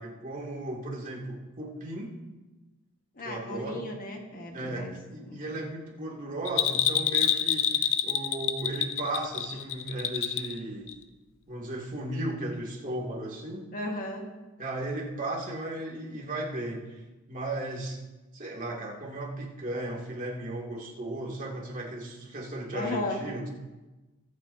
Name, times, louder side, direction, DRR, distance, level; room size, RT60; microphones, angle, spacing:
voice 1, 0.0-2.1 3.2-3.9 4.5-10.9 11.5-13.7 14.6-16.8 17.3-18.0 18.3-23.5, right 1 dB, 40° right, -2 dB, 2.3 m, -35 dB
voice 2, 3.2-4.9 5.2-5.4 13.7-14.3 22.7-23.2, left 1 dB, 40° left, 2 dB, 1.5 m, -35 dB
Bell, 6.5-10.6 10.9-11.0, left 9 dB, 65° left, 0.6 m, -27 dB
23.0 x 8.6 x 2.7 m, 1.1 s
head